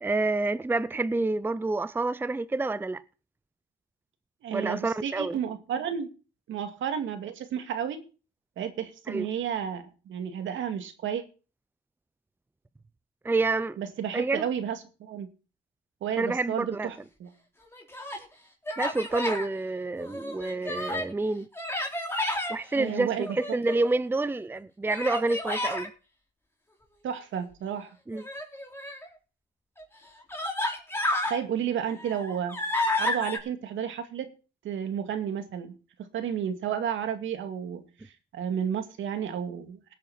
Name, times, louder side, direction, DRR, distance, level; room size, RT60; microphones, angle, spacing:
voice 1, 0.0-3.0 4.5-5.4 9.1-9.3 13.2-13.8 14.1-14.5 16.2-16.9 18.8-21.5 22.5-25.9 28.1-28.2, right 3 dB, 10° right, 0.5 m, -28 dB
voice 2, 4.4-6.1 6.5-8.0 8.6-11.2 13.8-15.3 16.0-17.3 22.8-23.6 27.0-28.0 31.3-32.6 33.0-34.3 34.6-35.8 36.1-40.0, right 8 dB, 75° right, 2.3 m, -32 dB
Human voice, 17.6-18.2 18.7-19.5 20.0-21.1 21.5-22.6 23.2-24.0 24.9-25.9 28.1-29.1 29.8-29.9 30.3-31.4 31.9-33.4, left 1 dB, 10° left, 3.8 m, -31 dB
18.5 x 8.6 x 4.3 m
cardioid pair, 90°, 20 cm